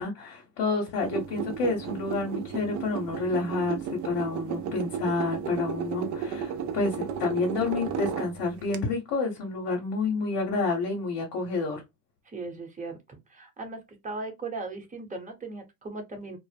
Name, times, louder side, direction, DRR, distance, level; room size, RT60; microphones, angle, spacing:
voice 1, 0.0-3.8 4.0-11.8, left 3 dB, 55° left, 0.9 m, -29 dB
sound 1, 1.0-8.8, right 7 dB, 40° right, 0.5 m, -33 dB
voice 2, 12.2-13.8 14.0-16.4, right 3 dB, 15° right, 0.9 m, -38 dB
2.0 x 2.0 x 3.3 m
hypercardioid pair, 90°, 46 cm